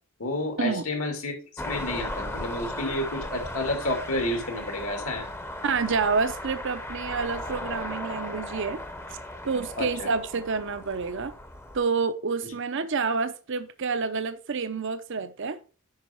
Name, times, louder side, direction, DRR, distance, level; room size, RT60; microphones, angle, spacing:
voice 1, 0.2-5.3 9.8-10.1 12.4-12.5, left 1 dB, 75° left, 2.7 m, -30 dB
sound 1, 1.6-11.8, left 1 dB, 10° left, 0.8 m, -37 dB
voice 2, 5.6-8.8 9.4-11.3 11.7-15.6, right 4 dB, 55° right, 0.7 m, -28 dB
9.5 x 5.6 x 4.5 m
head